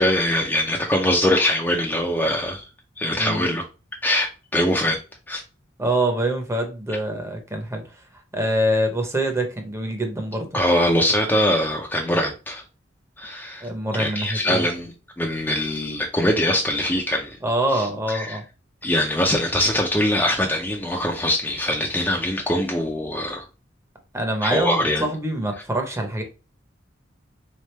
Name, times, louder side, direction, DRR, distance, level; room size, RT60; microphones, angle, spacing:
voice 1, 0.0-2.6 3.0-3.6 4.0-5.0 5.3-5.4 10.5-12.6 13.2-13.7 14.0-17.4 17.7-18.4 18.8-23.4 24.4-25.1, left 1 dB, 10° left, 0.5 m, -22 dB
voice 2, 3.1-3.4 5.8-7.8 8.3-10.5 13.6-14.6 17.4-18.4 24.1-26.2, right 1 dB, 15° right, 0.8 m, -25 dB
3.7 x 3.3 x 3.2 m
head